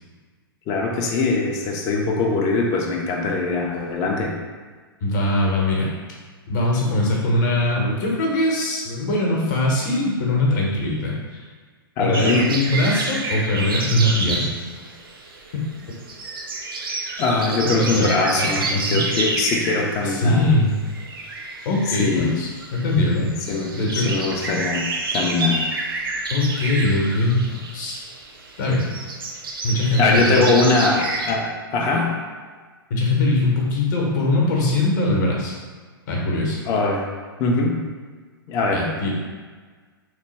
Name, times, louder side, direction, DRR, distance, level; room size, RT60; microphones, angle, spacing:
voice 1, 0.7-4.4 12.0-12.5 17.2-20.5 22.0-22.4 23.5-25.6 30.0-32.2 36.7-37.1 37.4-37.8 38.5-38.9, left 3 dB, 25° left, 0 dB, 0.5 m, -22 dB
voice 2, 5.0-5.9 6.5-11.1 12.0-14.6 17.6-19.0 20.0-20.7 21.6-23.3 23.7-24.1 26.3-28.0 28.6-28.9 29.6-30.5 32.9-35.5 36.1-36.6 38.7-39.1, left 1 dB, 50° left, -2 dB, 0.9 m, -21 dB
sound 1, 12.1-31.3, right 3 dB, 65° right, 0.5 m, -29 dB
3.2 x 2.2 x 3.2 m, 1.5 s
figure-of-eight pair, 110°, 13 cm